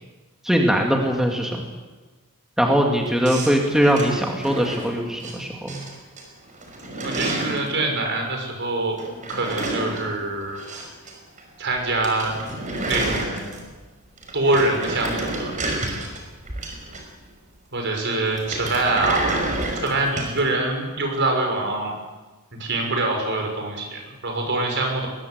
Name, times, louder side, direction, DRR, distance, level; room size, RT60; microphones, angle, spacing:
voice 1, 0.4-1.6 2.6-5.8, equal, ahead, 1 dB, 2.2 m, -21 dB
sound 1, 3.2-5.3 5.7-6.2 6.5-7.7 9.0-11.1 11.4-11.5 11.8-11.9 12.0-13.8 14.2-17.3 18.3-20.4, right 2 dB, 35° right, 5.5 m, -29 dB
voice 2, 7.0-10.6 11.6-12.3 12.8-13.6 14.3-15.5 17.7-19.4 19.8-21.9 22.6-25.1, right 2 dB, 55° right, 2 dB, 6.5 m, -24 dB
21.5 x 21.5 x 8.1 m, 1.2 s
head